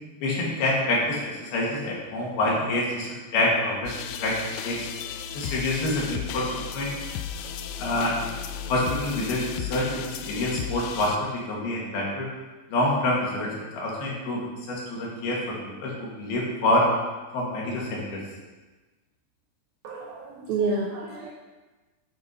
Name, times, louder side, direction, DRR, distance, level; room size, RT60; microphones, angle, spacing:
voice 1, 0.2-4.9 5.3-6.5 6.7-6.9 7.8-8.1 8.7-12.3 12.7-15.6 15.8-16.9 17.3-18.2, left 1 dB, 60° left, -3 dB, 3.6 m, -27 dB
sound 1, 3.9-11.2, left 8 dB, 80° left, 2.7 m, -35 dB
voice 2, 19.8-21.3, right 3 dB, 75° right, -1 dB, 2.2 m, -29 dB
8.8 x 8.3 x 5.5 m, 1.2 s
omnidirectional pair, 5.4 m